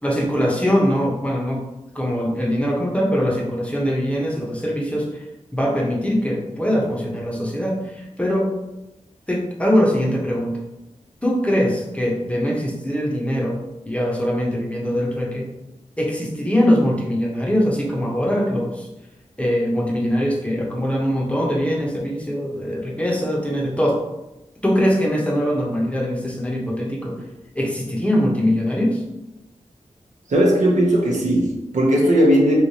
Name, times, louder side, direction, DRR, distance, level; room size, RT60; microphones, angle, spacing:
voice 1, 0.0-1.6 1.9-5.2 5.5-8.5 9.3-10.6 11.2-13.6 13.9-15.5 16.0-18.9 19.4-24.0 24.6-27.1 27.5-29.0, equal, 10° left, -3 dB, 0.8 m, -22 dB
voice 2, 30.3-32.6, equal, 80° right, -2 dB, 0.8 m, -17 dB
3.2 x 2.9 x 2.7 m, 0.97 s
wide cardioid pair, 75°, 12 cm